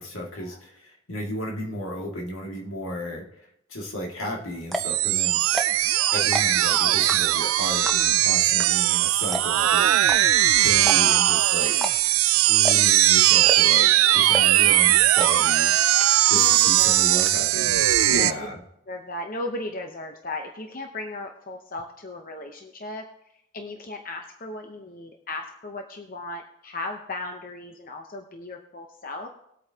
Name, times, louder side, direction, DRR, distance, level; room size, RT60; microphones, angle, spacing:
voice 1, 0.0-3.3 3.7-5.4 6.1-11.8 12.5-15.8 16.3-17.8 18.1-18.6, equal, 75° left, 0 dB, 2.2 m, -34 dB
sound 1, 4.2-4.3 4.6-5.0 5.4-5.9 6.2-6.6 7.1-7.5 7.8-8.2 8.6-8.7 8.9-9.0 9.3-9.7 10.0-10.2 10.8-11.2 11.7-12.2 12.6-13.0 13.4-13.8 14.3-14.6 15.2-15.3 15.6-15.7 16.0-16.4 16.7-17.3, equal, ahead, 0.8 m, -30 dB
sound 2, 4.7-18.3, right 14 dB, 80° right, 0.4 m, -19 dB
voice 2, 16.3-17.3 18.1-18.5 18.9-23.1 23.5-29.3, left 2 dB, 40° left, 4 dB, 0.8 m, -36 dB
20.0 x 8.4 x 2.8 m, 0.79 s
head